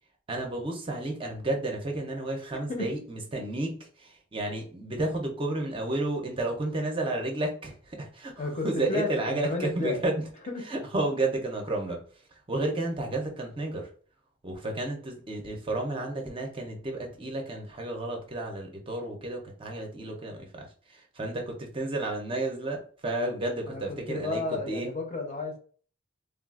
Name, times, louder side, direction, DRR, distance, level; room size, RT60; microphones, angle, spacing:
voice 1, 0.3-8.3 8.6-10.1 10.7-12.0 12.5-13.9 14.4-24.9, right 2 dB, 25° right, 2 dB, 0.5 m, -32 dB
voice 2, 8.4-10.0 10.5-10.7 23.6-25.6, left 2 dB, 35° left, 2 dB, 0.6 m, -32 dB
3.5 x 2.3 x 2.3 m, 0.43 s
head